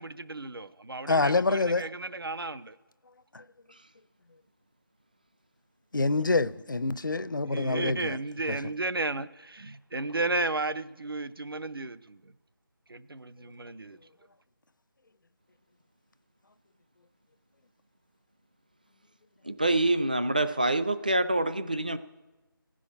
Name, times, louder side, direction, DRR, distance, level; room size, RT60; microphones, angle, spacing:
voice 1, 0.0-2.8 7.5-12.2 12.9-14.0, right 2 dB, 75° right, 0.7 m, -33 dB
voice 2, 1.1-1.9 3.3-3.4 5.9-8.2 8.5-8.6, left 3 dB, 60° left, 0.5 m, -26 dB
voice 3, 19.4-22.0, right 2 dB, 20° right, 0.4 m, -26 dB
15.5 x 6.3 x 9.0 m
figure-of-eight pair, 165°, 12 cm